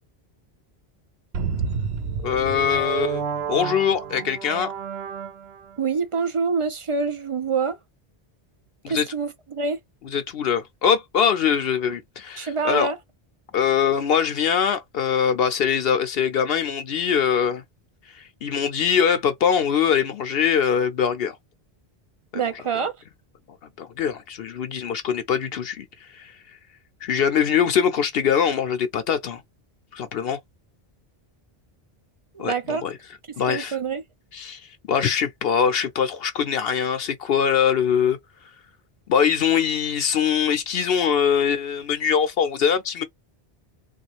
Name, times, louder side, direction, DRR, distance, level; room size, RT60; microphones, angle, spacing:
sound 1, 1.3-5.8, right 6 dB, 75° right, 0.9 m, -30 dB
voice 1, 2.2-3.2 3.5-4.7 8.8-9.1 10.0-12.9 13.5-17.6 18.1-21.4 22.7-22.9 23.8-26.3 27.0-29.4 29.9-30.4 32.4-33.0 33.4-33.8 34.3-34.6 34.9-38.2 39.1-43.0, left 7 dB, 70° left, 0.8 m, -22 dB
voice 2, 5.8-7.8 8.9-9.8 12.4-13.0 22.3-22.9 32.3-32.8 33.5-34.0, right 5 dB, 45° right, 0.4 m, -26 dB
3.1 x 2.4 x 3.1 m
omnidirectional pair, 1.1 m